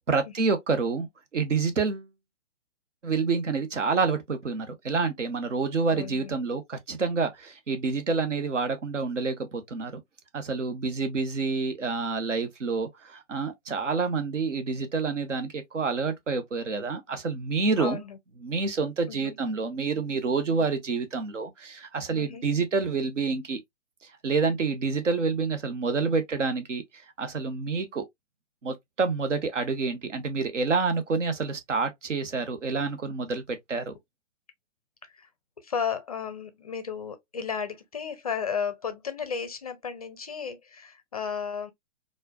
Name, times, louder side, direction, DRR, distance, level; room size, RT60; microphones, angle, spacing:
voice 1, 0.1-1.1 1.3-2.1 3.0-10.0 10.3-18.0 18.4-23.6 24.2-26.8 27.2-28.0 28.6-33.9, right 4 dB, 70° right, 1.2 m, -28 dB
voice 2, 5.9-6.3 17.8-18.2 19.1-19.4 22.2-22.5 35.0-35.3 35.6-41.7, left 6 dB, 30° left, 0.4 m, -34 dB
4.3 x 2.5 x 2.3 m
figure-of-eight pair, 135°, 38 cm